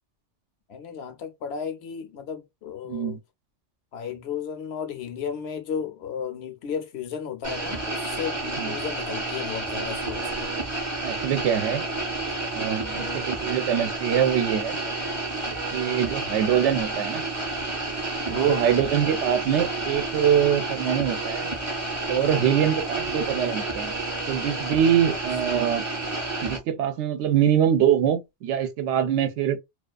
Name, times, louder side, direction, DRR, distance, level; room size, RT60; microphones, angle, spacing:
voice 1, 0.7-3.2 3.9-10.6 11.9-12.0 12.9-13.3 18.3-18.7, left 7 dB, 65° left, 0.8 m, -34 dB
voice 2, 2.8-3.2 8.6-8.7 11.0-11.8 12.5-14.8 15.7-17.2 18.3-21.5 22.1-23.9 24.3-25.8 26.4-29.6, right 9 dB, 75° right, 0.9 m, -24 dB
sound 1, 7.4-26.6, right 2 dB, 20° right, 0.6 m, -30 dB
2.4 x 2.3 x 2.2 m
omnidirectional pair, 1.2 m